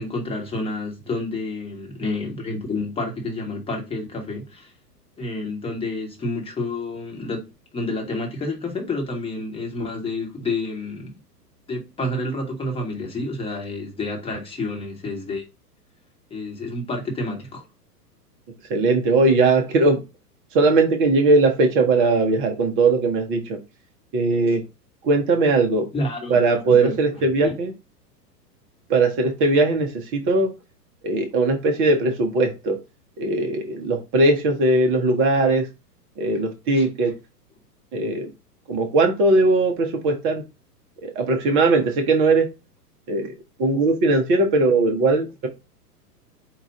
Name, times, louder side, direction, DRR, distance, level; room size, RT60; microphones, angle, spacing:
voice 1, 0.0-4.7 5.2-7.5 7.7-11.1 11.7-15.4 16.3-17.6 24.5-24.6 25.9-26.9 27.4-27.5 36.7-36.9, left 2 dB, 10° left, 1.2 m, -29 dB
voice 2, 18.7-20.0 20.5-23.6 24.1-24.6 25.0-25.9 26.3-27.7 28.9-30.5 31.0-32.8 33.2-35.7 36.2-37.1 37.9-38.3 38.7-40.4 41.0-42.5 43.1-43.3 43.6-45.5, right 3 dB, 25° right, 0.8 m, -19 dB
4.7 x 2.4 x 4.0 m
figure-of-eight pair, 105°, 48 cm